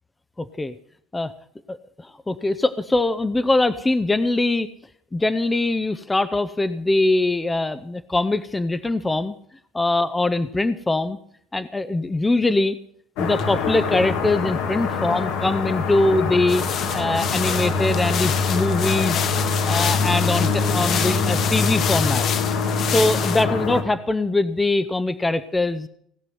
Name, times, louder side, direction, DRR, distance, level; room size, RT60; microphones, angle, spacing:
voice 1, 0.4-0.7 1.1-1.3 1.7-4.7 5.1-9.4 9.7-11.2 11.5-12.8 13.2-16.6 16.9-19.2 19.6-22.3 22.9-25.9, left 2 dB, 10° left, 12 dB, 0.6 m, -22 dB
sound 1, 13.2-23.8, left 4 dB, 75° left, 2.1 m, -24 dB
sound 2, 16.5-23.4, left 8 dB, 45° left, 1.0 m, -28 dB
18.0 x 6.0 x 9.3 m, 0.67 s
cardioid pair, 125°, 0 cm